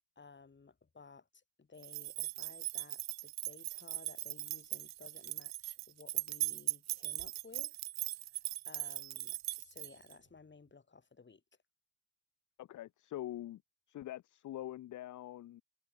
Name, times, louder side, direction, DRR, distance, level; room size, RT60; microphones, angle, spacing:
voice 1, 0.2-7.8 8.3-8.4 8.6-11.4, left 4 dB, 25° left, 6.6 m, -57 dB
sound 1, 1.8-10.1, right 15 dB, 40° right, 0.5 m, -39 dB
voice 2, 12.6-13.6 13.9-15.6, left 13 dB, 40° left, 0.8 m, -44 dB
supercardioid pair, 85°, 46 cm